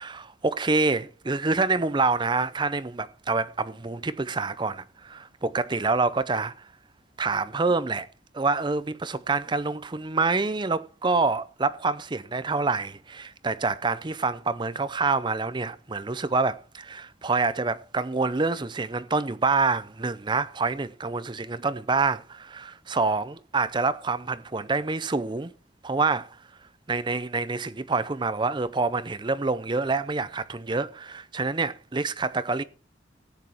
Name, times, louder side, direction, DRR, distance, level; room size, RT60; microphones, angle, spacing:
voice 1, 0.0-6.5 7.2-8.1 8.3-25.5 25.8-26.4 26.9-32.6, right 3 dB, 25° right, 0.6 m, -27 dB
15.0 x 9.1 x 4.5 m
head